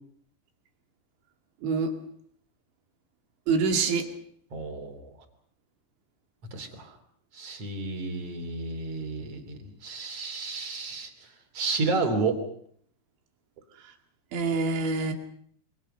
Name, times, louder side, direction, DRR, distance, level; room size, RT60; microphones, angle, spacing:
voice 1, 1.6-1.9 3.5-4.1 14.3-15.1, right 4 dB, 80° right, 5 dB, 4.5 m, -25 dB
voice 2, 4.5-5.1 6.5-6.9 7.3-11.3 11.5-12.4, right 3 dB, 35° right, 7 dB, 3.8 m, -31 dB
28.0 x 25.0 x 5.6 m, 0.63 s
omnidirectional pair, 5.1 m